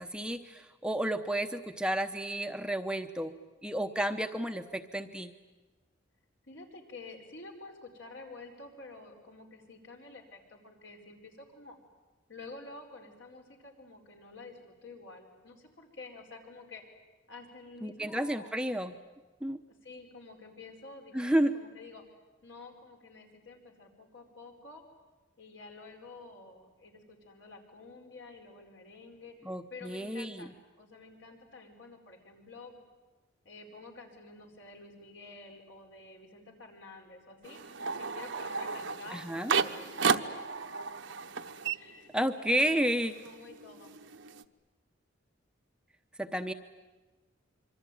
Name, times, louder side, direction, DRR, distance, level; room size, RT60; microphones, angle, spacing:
voice 1, 0.0-3.3 3.6-5.3 17.8-19.0 19.4-19.6 21.1-21.5 29.4-30.5 39.1-39.5 42.1-43.2 46.2-46.5, right 1 dB, 5° right, 7 dB, 0.8 m, -31 dB
voice 2, 6.4-11.8 12.3-16.9 17.3-18.5 19.7-22.0 22.4-24.8 25.4-29.4 29.7-32.8 33.4-37.6 38.0-40.5 41.7-42.9 43.2-43.9, left 3 dB, 70° left, 2 dB, 4.7 m, -50 dB
sound 1, 37.4-42.6 42.9-44.4, right 5 dB, 65° right, 1.0 m, -33 dB
25.5 x 24.5 x 9.3 m, 1.2 s
head